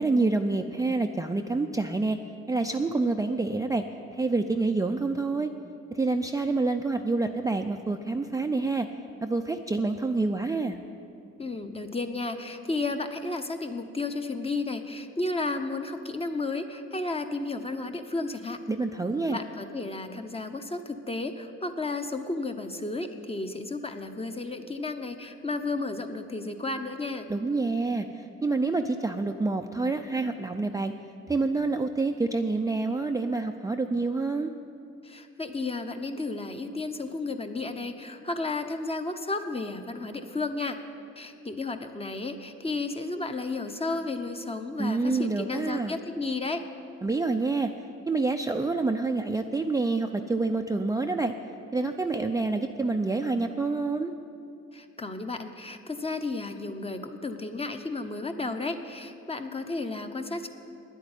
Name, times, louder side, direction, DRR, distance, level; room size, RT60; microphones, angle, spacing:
voice 1, 0.0-2.2 2.5-3.8 4.1-5.5 5.9-8.9 9.2-10.8 18.7-19.4 27.3-28.1 28.4-30.9 31.3-34.5 44.8-45.9 47.0-47.7 48.1-51.3 51.7-54.1, right 3 dB, 10° right, 4 dB, 0.4 m, -27 dB
voice 2, 11.4-18.6 19.3-27.3 35.0-40.8 41.2-46.6 54.7-60.5, left 3 dB, 20° left, 7 dB, 0.9 m, -33 dB
9.9 x 8.3 x 9.7 m, 2.5 s
cardioid pair, 90°, 30 cm